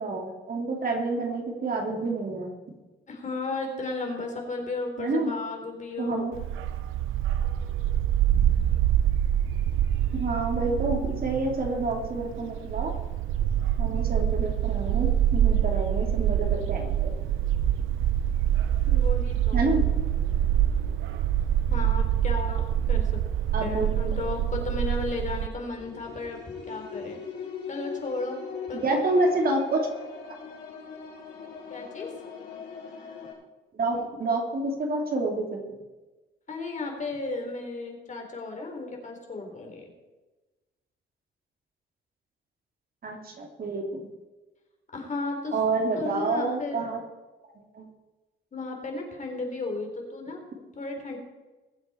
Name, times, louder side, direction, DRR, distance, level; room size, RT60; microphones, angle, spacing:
voice 1, 0.0-2.5 5.0-5.3 6.0-6.3 10.1-12.9 13.8-17.1 19.5-19.8 23.5-23.9 24.2-24.3 28.7-29.9 33.7-35.7 43.0-44.1 45.5-47.0 47.6-47.9, right 2 dB, 50° right, 2 dB, 2.8 m, -28 dB
voice 2, 3.1-6.3 18.9-19.7 21.7-22.6 22.9-23.1 23.6-26.4 26.7-27.2 27.7-28.4 28.7-29.0 31.7-32.1 36.5-39.9 44.9-45.6 46.0-46.8 48.5-51.2, left 3 dB, 40° left, 2 dB, 3.9 m, -34 dB
Bark, 6.3-25.5, right 10 dB, 85° right, 0.8 m, -25 dB
sound 1, 25.7-33.3, left 6 dB, 75° left, 5.6 m, -40 dB
21.5 x 8.1 x 4.4 m, 1.2 s
cardioid pair, 90°, 20 cm